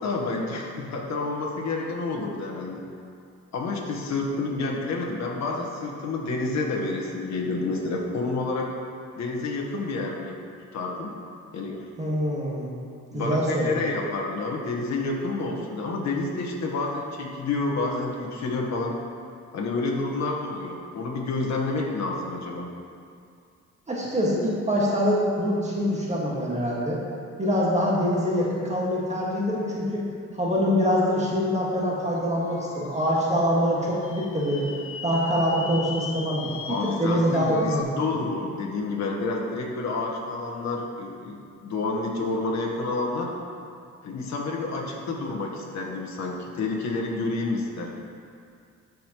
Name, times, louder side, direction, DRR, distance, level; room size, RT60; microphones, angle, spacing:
voice 1, 0.0-2.9 3.5-8.7 9.1-10.4 10.7-11.1 11.5-11.8 13.1-18.9 19.5-22.7 36.7-43.3 44.0-47.9, left 3 dB, 65° left, -1 dB, 1.3 m, -29 dB
voice 2, 12.0-12.7 13.1-13.7 23.9-27.0 27.4-30.0 30.4-34.7 35.0-37.9, equal, 20° right, -5 dB, 1.8 m, -24 dB
sound 1, 32.2-37.8, left 6 dB, 45° left, 0.6 m, -39 dB
13.5 x 5.3 x 3.1 m, 2.3 s
cardioid pair, 90°, 30 cm